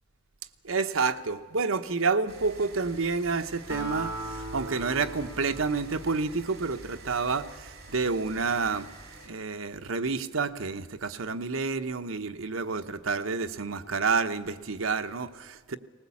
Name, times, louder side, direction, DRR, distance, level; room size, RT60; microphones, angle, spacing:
voice 1, 0.6-8.9 9.3-15.8, right 4 dB, 80° right, 8 dB, 1.0 m, -29 dB
sound 1, 2.3-9.3, right 2 dB, 55° right, 3.7 m, -48 dB
Acoustic guitar, 3.7-7.3, right 1 dB, 60° left, 5.2 m, -39 dB
19.5 x 19.0 x 8.5 m, 1.5 s
head